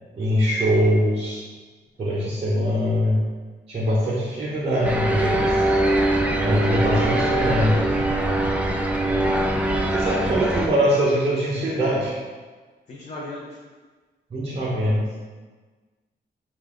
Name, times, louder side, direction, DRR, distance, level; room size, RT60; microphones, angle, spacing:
voice 1, 0.2-1.4 2.0-3.2 3.7-5.7 6.4-8.0 9.9-12.1 14.3-15.0, equal, 30° right, -7 dB, 0.7 m, -22 dB
sound 1, 4.8-10.7, right 1 dB, 5° right, 0.3 m, -22 dB
voice 2, 6.2-8.2 12.9-13.5, left 2 dB, 40° left, -5 dB, 0.6 m, -35 dB
5.3 x 2.4 x 3.6 m, 1.4 s
wide cardioid pair, 155°, 18 cm